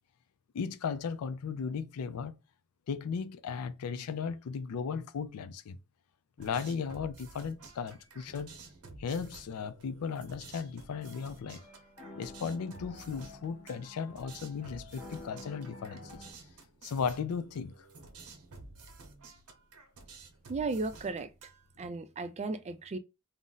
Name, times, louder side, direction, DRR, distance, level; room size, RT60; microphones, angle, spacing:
voice 1, 0.5-2.3 2.9-5.8 6.4-8.6 9.0-11.6 12.2-16.2 16.8-17.7, left 6 dB, 75° left, 0.4 m, -36 dB
sound 1, 6.4-21.9, right 3 dB, 80° right, 0.8 m, -52 dB
sound 2, 10.9-16.3, left 2 dB, 35° left, 0.8 m, -50 dB
voice 2, 20.5-21.3 21.8-23.0, right 3 dB, 30° right, 0.4 m, -35 dB
2.5 x 2.0 x 3.8 m
head